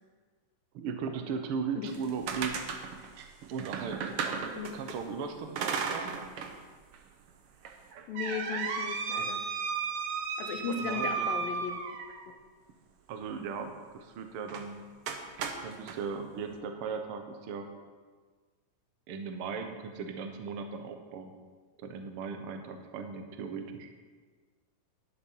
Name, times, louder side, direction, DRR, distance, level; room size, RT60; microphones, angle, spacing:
voice 1, 0.7-2.6 3.5-6.1 10.6-11.5 13.1-14.9 15.6-17.7 19.1-21.3 21.8-23.9, right 5 dB, 90° right, 6 dB, 1.2 m, -38 dB
sound 1, 1.9-5.0 5.6-6.6 6.9-7.0 7.6-12.3 14.5-14.7 15.1-16.0, right 6 dB, 70° right, 1.4 m, -34 dB
voice 2, 8.1-9.4 10.4-11.8 12.3-12.4, left 7 dB, 85° left, 5 dB, 2.9 m, -36 dB
11.0 x 10.5 x 5.6 m, 1.5 s
omnidirectional pair, 4.0 m